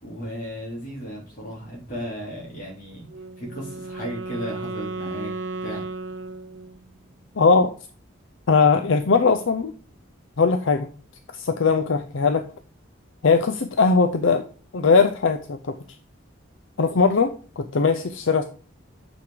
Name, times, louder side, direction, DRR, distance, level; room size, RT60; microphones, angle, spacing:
voice 1, 0.0-3.1 3.4-5.3 5.6-5.8, equal, 40° left, -4 dB, 3.8 m, -35 dB
Wind instrument woodwind instrument, 3.1-7.0, right 3 dB, 65° right, 0.6 m, -34 dB
voice 2, 7.4-7.7 8.5-9.7 10.4-10.9 11.3-12.4 13.2-14.4 14.7-15.7 16.8-18.4, left 4 dB, 70° left, 8 dB, 0.6 m, -20 dB
6.3 x 5.9 x 5.0 m, 0.39 s
head